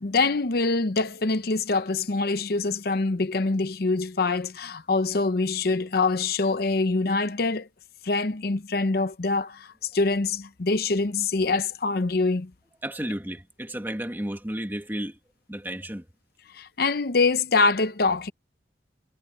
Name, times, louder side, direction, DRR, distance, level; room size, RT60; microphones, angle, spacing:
voice 1, 0.0-7.7 8.0-9.7 9.9-12.5 16.5-18.3, left 3 dB, 55° left, 0.7 m, -24 dB
voice 2, 12.8-15.2 15.5-16.0, right 1 dB, 10° right, 1.6 m, -32 dB
head